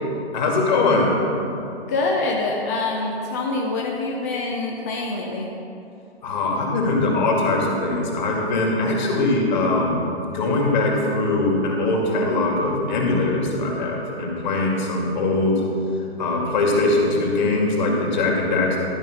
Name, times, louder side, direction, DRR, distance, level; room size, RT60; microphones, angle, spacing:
voice 1, 0.3-1.2 6.2-18.8, left 2 dB, 45° left, -1 dB, 2.4 m, -21 dB
voice 2, 1.9-5.5, left 3 dB, 15° left, -1 dB, 0.4 m, -25 dB
13.0 x 5.4 x 6.6 m, 2.7 s
figure-of-eight pair, 135°, 32 cm